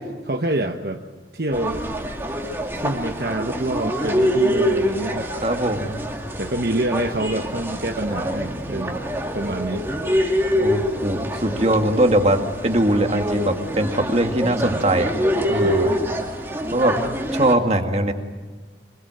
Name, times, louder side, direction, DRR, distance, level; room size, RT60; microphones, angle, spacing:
voice 1, 0.3-1.0 1.3-1.8 2.7-5.3 6.4-9.0 9.3-9.9 15.5-15.8, right 1 dB, 60° right, 3 dB, 1.1 m, -26 dB
sound 1, 1.5-17.5, equal, 15° right, 2.5 m, -25 dB
voice 2, 5.4-6.0 10.6-15.1 15.5-15.9 16.7-17.0 17.3-18.1, right 1 dB, 35° right, 4 dB, 2.2 m, -21 dB
25.5 x 22.5 x 7.9 m, 1.4 s
head